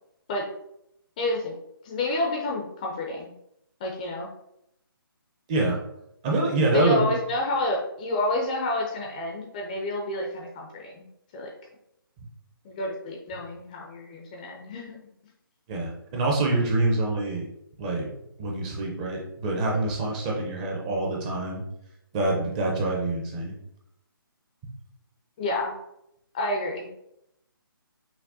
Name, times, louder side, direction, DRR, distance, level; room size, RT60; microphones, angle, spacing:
voice 1, 1.2-1.5 1.8-3.3 3.8-4.3 6.7-11.1 11.3-11.5 12.6-15.0 25.4-25.7 26.3-26.9, left 2 dB, 20° left, 0 dB, 0.4 m, -29 dB
voice 2, 5.5-5.8 6.2-7.1 15.7-17.5 17.8-18.1 18.4-21.6 22.1-23.5, right 2 dB, 20° right, -2 dB, 0.6 m, -26 dB
5.8 x 2.1 x 2.7 m, 0.79 s
figure-of-eight pair, 145°, 12 cm